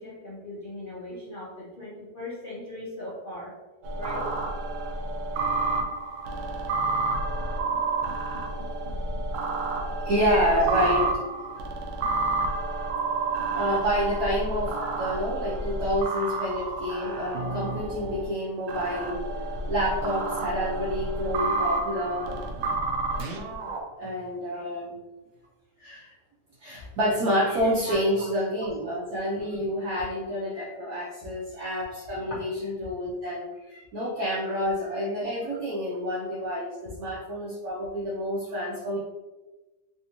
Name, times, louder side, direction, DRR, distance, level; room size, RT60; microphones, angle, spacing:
voice 1, 0.0-3.5 4.0-4.3 6.9-7.0 10.5-10.7 14.8-14.9 16.2-16.3 21.9-22.0 27.9-28.3 32.2-32.4 37.0-37.1 38.5-38.6, left 1 dB, 75° left, -8 dB, 0.4 m, -39 dB
sound 1, 3.8-18.2 18.7-23.8, right 3 dB, 85° right, 0.7 m, -30 dB
voice 2, 10.0-11.1 13.5-19.3 19.7-22.4 24.0-25.0 25.8-26.1 26.6-39.0, equal, 65° right, -6 dB, 1.1 m, -28 dB
3.4 x 2.6 x 2.8 m, 1.2 s
omnidirectional pair, 1.9 m